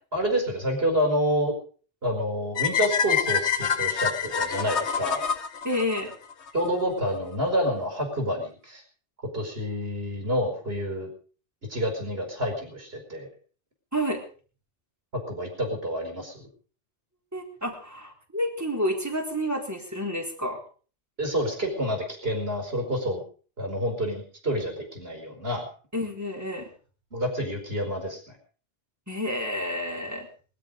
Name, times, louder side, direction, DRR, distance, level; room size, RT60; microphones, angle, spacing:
voice 1, 0.1-1.5 2.0-5.2 6.5-8.8 9.3-11.1 11.7-13.3 15.1-16.5 21.2-23.2 23.6-25.7 27.1-28.2, equal, 55° right, 3 dB, 5.1 m, -28 dB
sound 1, 2.6-6.7, left 7 dB, 70° left, 1.5 m, -27 dB
voice 2, 5.6-6.1 13.9-14.2 17.3-20.6 25.9-26.7 29.1-30.3, equal, 15° right, 1 dB, 4.1 m, -29 dB
22.0 x 12.5 x 5.2 m, 0.42 s
omnidirectional pair, 1.2 m